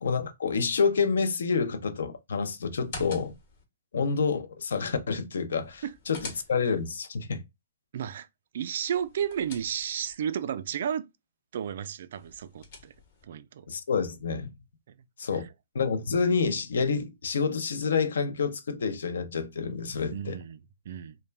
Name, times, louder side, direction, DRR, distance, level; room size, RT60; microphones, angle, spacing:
voice 1, 0.0-3.3 3.9-7.4 13.7-14.5 15.2-15.5 15.7-20.4, left 5 dB, 75° left, 0.5 m, -28 dB
sound 1, 2.7-3.6 5.6-6.9 8.9-10.1 12.1-13.2, left 3 dB, 50° left, 0.9 m, -45 dB
voice 2, 7.9-8.3 8.5-11.1 11.5-12.9 13.3-13.7 14.9-15.0 20.1-20.6 20.9-21.2, right 9 dB, 60° right, 0.3 m, -32 dB
2.2 x 2.1 x 3.2 m
hypercardioid pair, 140°, 0 cm